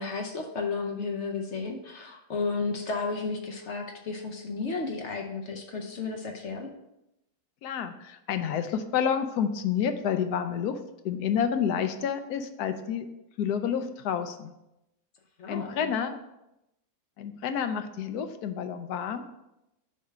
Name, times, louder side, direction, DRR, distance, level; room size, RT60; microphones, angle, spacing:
voice 1, 0.0-6.7 15.4-15.9, left 4 dB, 55° left, 3 dB, 0.9 m, -33 dB
voice 2, 7.6-10.8 11.0-13.1 13.4-14.5 15.5-16.2 17.2-19.2, left 8 dB, 75° left, 9 dB, 1.1 m, -29 dB
6.7 x 3.2 x 5.8 m, 0.89 s
omnidirectional pair, 1.7 m